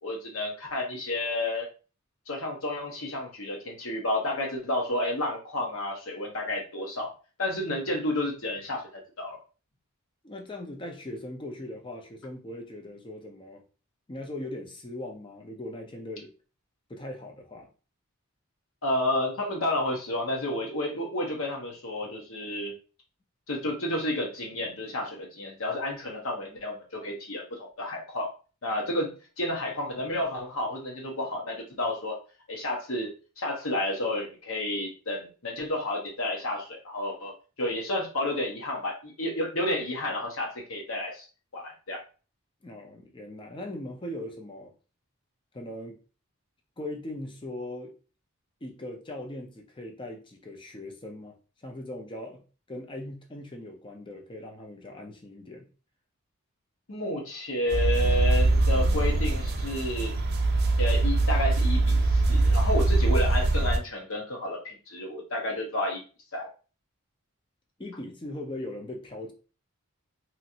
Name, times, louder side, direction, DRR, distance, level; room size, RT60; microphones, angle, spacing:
voice 1, 0.0-1.7 2.3-7.1 7.4-8.9 9.2-9.4 18.8-22.7 23.5-28.3 28.6-32.2 32.5-33.1 33.4-37.3 37.6-41.3 41.5-42.0 56.9-60.1 60.8-66.0 66.3-66.5, left 1 dB, 75° left, 0 dB, 1.0 m, -31 dB
voice 2, 10.2-13.6 14.1-16.3 16.9-17.7 42.6-44.7 45.5-46.0 46.8-47.9 48.6-52.4 52.7-55.7 67.8-69.3, left 1 dB, 25° left, 3 dB, 0.5 m, -39 dB
sound 1, 57.7-63.8, right 2 dB, 45° right, 0.4 m, -23 dB
3.0 x 2.5 x 2.7 m, 0.35 s
head